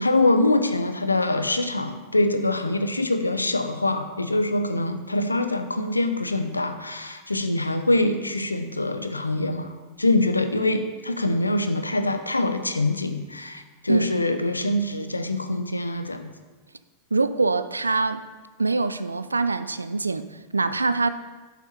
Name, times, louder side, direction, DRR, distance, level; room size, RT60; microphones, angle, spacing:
voice 1, 0.0-16.3, left 2 dB, 90° left, 8 dB, 0.7 m, -24 dB
voice 2, 17.1-18.2 18.6-21.1, right 3 dB, 85° right, 12 dB, 0.4 m, -24 dB
11.0 x 5.9 x 4.3 m, 1.3 s
figure-of-eight pair, 90°, 0 cm